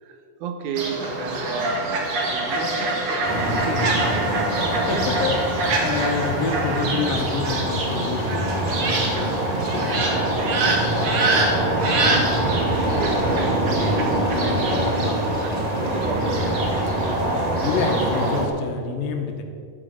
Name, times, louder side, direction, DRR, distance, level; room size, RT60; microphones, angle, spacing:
voice 1, 0.0-4.4 11.4-16.4, right 5 dB, 70° right, 7 dB, 2.2 m, -34 dB
Fowl, 0.8-18.4, right 2 dB, 50° right, 2.4 m, -27 dB
sound 1, 3.2-18.5, right 1 dB, 30° right, 0.6 m, -24 dB
voice 2, 4.9-5.4 5.8-9.9 17.6-19.4, left 5 dB, 85° left, 4 dB, 3.1 m, -28 dB
13.5 x 11.5 x 5.4 m, 2.4 s
omnidirectional pair, 4.0 m